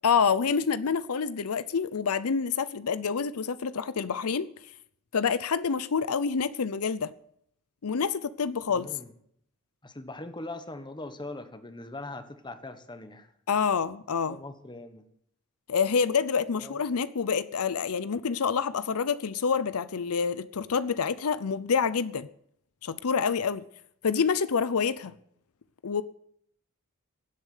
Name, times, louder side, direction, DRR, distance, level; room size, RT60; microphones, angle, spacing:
voice 1, 0.0-4.5 5.1-7.1 7.8-8.9 13.5-14.4 15.7-22.3 22.8-23.6 24.0-25.1 25.8-26.0, left 6 dB, 80° left, 0.6 m, -27 dB
voice 2, 8.7-9.1 9.8-13.3 14.3-15.0 16.6-16.8, left 2 dB, 20° left, 1.3 m, -41 dB
17.0 x 8.2 x 9.3 m
head